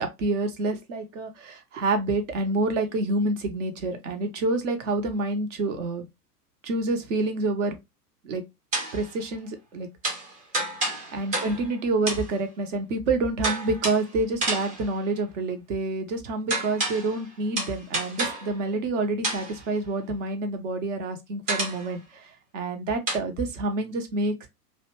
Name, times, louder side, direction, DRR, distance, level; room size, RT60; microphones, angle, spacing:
voice 1, 0.0-6.0 6.6-7.8 8.2-8.4 8.9-9.9 11.1-24.5, right 2 dB, 50° right, 0.8 m, -28 dB
sound 1, 8.7-9.1 10.0-11.8 12.1-12.4 13.4-14.1 14.4-14.9 16.5-17.2 17.6-18.6 19.2-19.6 21.5-21.9 23.1-23.2, right 2 dB, 15° right, 0.5 m, -30 dB
2.7 x 2.1 x 2.9 m
figure-of-eight pair, 95°, 48 cm